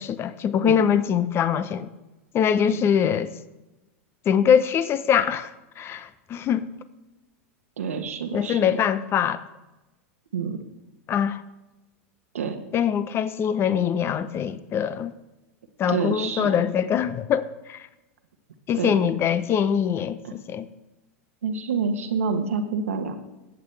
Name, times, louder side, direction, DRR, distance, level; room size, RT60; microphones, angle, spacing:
voice 1, 0.0-1.9 2.3-3.3 4.3-6.7 8.3-9.4 11.1-11.4 12.7-15.1 15.8-17.9 18.7-20.7, left 8 dB, 35° left, 0.8 m, -23 dB
voice 2, 7.8-8.6 10.3-10.6 12.3-12.6 15.9-16.5 18.8-19.0 21.4-23.1, right 5 dB, 85° right, 1.3 m, -27 dB
18.5 x 8.4 x 3.3 m
hypercardioid pair, 105°, 7 cm